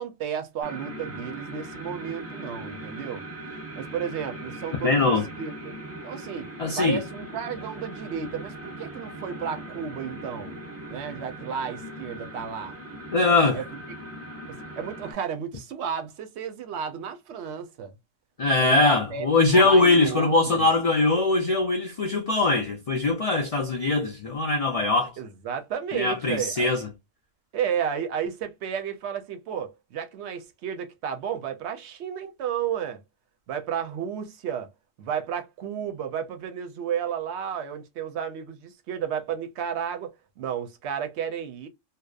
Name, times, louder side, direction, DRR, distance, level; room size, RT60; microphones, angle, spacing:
voice 1, 0.0-3.2 3.7-5.8 6.0-6.5 6.8-10.6 10.9-12.8 13.5-13.6 14.5-17.9 18.6-20.7 25.2-26.7 27.5-33.0 33.5-34.7 35.0-41.7, right 8 dB, 70° right, 0.8 m, -32 dB
sound 1, 0.6-15.1, right 1 dB, 20° right, 0.4 m, -39 dB
voice 2, 4.8-5.3 6.6-7.0 13.1-13.6 18.4-25.1 25.9-26.9, left 3 dB, 65° left, 0.3 m, -21 dB
2.7 x 2.1 x 2.3 m
omnidirectional pair, 1.3 m